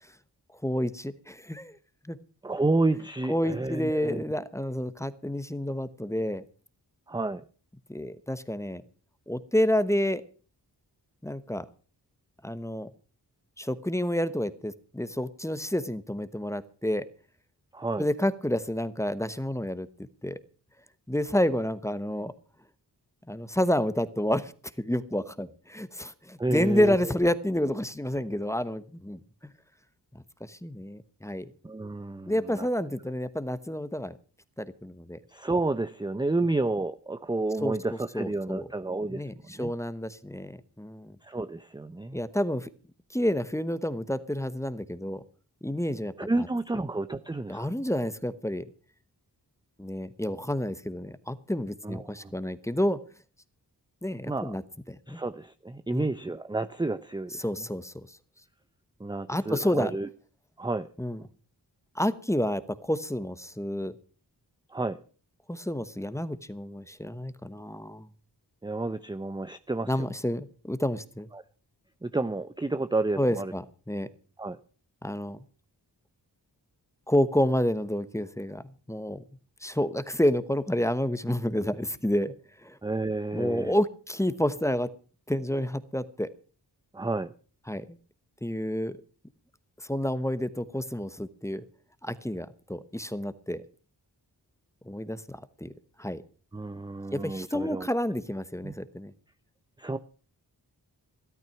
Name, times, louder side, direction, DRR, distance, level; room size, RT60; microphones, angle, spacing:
voice 1, 0.6-1.7 2.1-2.2 3.3-6.4 7.9-8.8 9.3-10.2 11.2-11.6 12.4-12.9 13.6-17.0 18.0-19.9 20.2-20.4 21.1-22.3 23.3-24.5 24.8-29.2 30.4-31.5 32.3-34.2 34.6-35.2 37.6-37.7 38.1-38.7 39.1-41.2 42.1-42.7 43.1-45.2 45.6-46.5 47.5-48.6 49.8-53.0 54.0-54.6 54.9-55.2 55.9-56.1 57.4-57.9 59.3-59.9 61.0-61.2 61.9-63.9 65.5-68.1 69.9-71.3 73.2-74.1 75.0-75.4 77.1-78.6 78.9-79.2 79.6-82.3 82.6-82.8 83.3-84.9 85.3-86.3 87.7-88.0 88.4-88.9 89.9-91.6 92.0-93.6 94.9-95.7 96.0-96.2 97.1-99.1, left 1 dB, 5° left, 14 dB, 1.1 m, -29 dB
voice 2, 2.4-4.2 7.1-7.4 17.7-18.1 26.4-27.1 31.6-32.7 35.3-39.2 39.5-39.7 41.2-42.2 46.2-47.7 51.8-52.3 54.2-54.6 55.1-57.4 59.0-60.1 60.6-60.9 64.7-65.0 68.6-70.0 71.3-71.4 72.0-73.5 74.4-74.6 82.8-83.7 86.9-87.3 96.5-97.9 98.6-98.7 99.8-100.0, right 2 dB, 10° right, 12 dB, 0.6 m, -30 dB
13.5 x 12.5 x 5.8 m, 0.39 s
cardioid pair, 50°, 41 cm